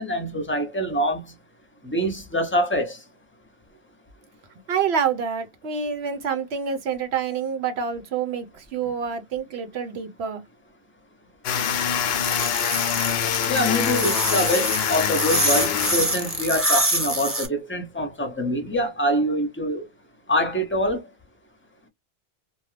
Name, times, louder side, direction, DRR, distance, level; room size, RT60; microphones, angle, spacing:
voice 1, 0.0-1.3 1.8-3.0 13.5-19.8 20.3-21.0, equal, 15° left, 0.7 m, -25 dB
voice 2, 4.7-10.4, right 7 dB, 85° right, 1.1 m, -27 dB
sound 1, 11.4-16.6, left 8 dB, 80° left, 0.8 m, -25 dB
sound 2, 12.2-17.5, right 1 dB, 15° right, 0.8 m, -25 dB
2.7 x 2.2 x 3.2 m
omnidirectional pair, 1.0 m